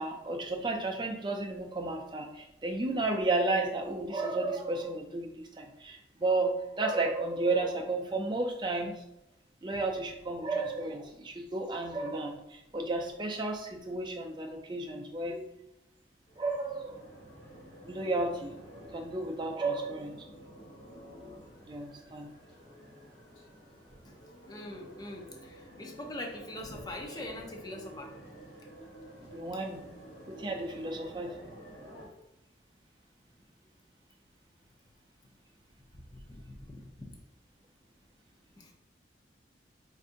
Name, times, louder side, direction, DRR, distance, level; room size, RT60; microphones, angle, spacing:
voice 1, 0.0-9.0 9.6-15.5 16.4-17.0 17.8-18.5 18.9-20.2 21.7-22.3 29.2-29.8 30.3-31.4, right 2 dB, 25° right, 3 dB, 0.4 m, -33 dB
sound 1, 16.3-32.1, equal, 80° left, 1.4 m, -51 dB
voice 2, 24.5-28.1 36.1-37.1 38.5-38.7, left 1 dB, 20° left, 1 dB, 0.5 m, -43 dB
4.9 x 2.6 x 2.5 m, 0.86 s
head